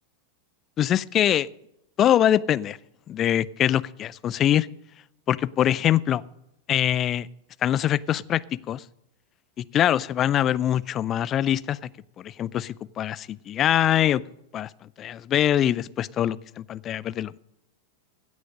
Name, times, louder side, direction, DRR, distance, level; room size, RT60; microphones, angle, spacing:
voice 1, 0.8-1.5 2.0-2.8 3.1-4.7 5.3-6.2 6.7-7.3 7.6-8.4 8.7-8.8 9.6-11.9 12.2-14.2 14.5-14.7 15.0-17.4, left 11 dB, 30° left, 20 dB, 0.4 m, -23 dB
16.0 x 6.3 x 6.5 m, 0.82 s
figure-of-eight pair, 90°, 0 cm